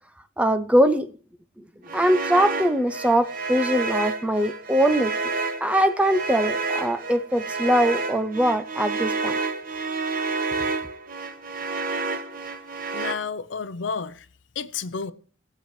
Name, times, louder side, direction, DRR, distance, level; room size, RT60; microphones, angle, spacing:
voice 1, 0.4-1.1 1.6-1.7 1.9-5.3 5.6-9.3, equal, 5° right, 0.6 m, -22 dB
sound 1, 1.8-13.2, right 3 dB, 45° right, 0.9 m, -29 dB
voice 2, 12.9-14.3 14.6-15.1, left 5 dB, 65° left, 0.6 m, -31 dB
21.0 x 7.7 x 3.2 m
head